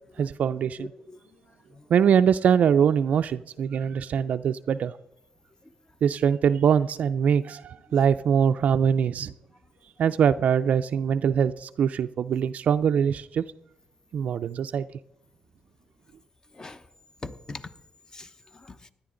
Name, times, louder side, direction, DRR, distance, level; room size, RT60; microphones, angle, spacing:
voice 1, 0.2-0.9 1.9-4.9 6.0-9.3 10.0-13.4 14.1-14.9, right 7 dB, 60° right, 0.4 m, -23 dB
voice 2, 0.8-1.2 1.7-1.9 7.9-8.0 10.0-10.1 16.5-16.8 17.2-17.7 18.1-18.9, left 3 dB, 25° left, 0.9 m, -42 dB
16.5 x 11.0 x 3.8 m
cardioid pair, 90°, 3 cm